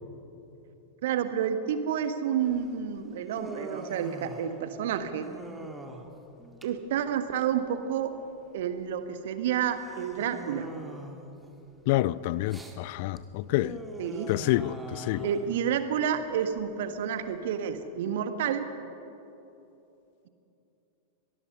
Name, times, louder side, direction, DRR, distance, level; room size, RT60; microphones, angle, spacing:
voice 1, 1.0-5.3 6.6-8.1 8.5-10.7 14.0-14.3 15.2-18.7, right 8 dB, 55° right, 1.5 m, -29 dB
Human voice, 2.4-17.6, right 2 dB, 10° right, 2.1 m, -45 dB
voice 2, 11.9-13.8 14.3-15.3, left 16 dB, 50° left, 0.5 m, -28 dB
24.5 x 19.0 x 5.7 m
figure-of-eight pair, 90°, 0 cm